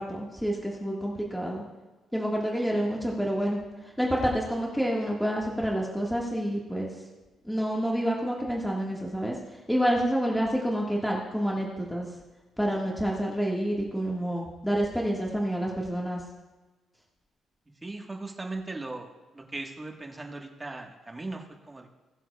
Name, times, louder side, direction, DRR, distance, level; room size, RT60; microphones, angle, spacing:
voice 1, 0.0-1.6 2.1-3.6 4.0-6.9 7.4-9.4 9.7-12.1 12.6-16.2, equal, ahead, -3 dB, 1.7 m, -28 dB
voice 2, 17.8-21.9, right 2 dB, 20° right, 2 dB, 1.4 m, -39 dB
20.5 x 7.4 x 2.3 m, 1.2 s
cardioid pair, 90°, 0 cm